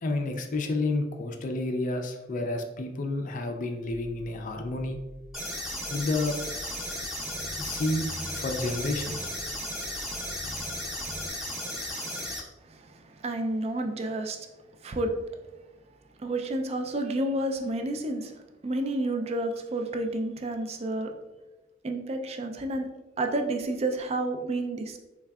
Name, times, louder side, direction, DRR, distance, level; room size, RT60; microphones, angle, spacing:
voice 1, 0.0-5.0 5.9-6.3 7.6-8.1 8.3-9.3, left 2 dB, 45° left, 5 dB, 0.4 m, -30 dB
sound 1, 5.1-11.3, equal, 55° right, 0.9 m, -46 dB
sound 2, 5.3-12.4, left 1 dB, ahead, 0.7 m, -35 dB
voice 2, 12.7-14.4 14.8-15.1 16.2-18.3 18.6-21.1 21.8-22.9 23.2-25.0, right 1 dB, 35° right, 5 dB, 0.3 m, -30 dB
3.6 x 3.2 x 2.3 m, 1.1 s
head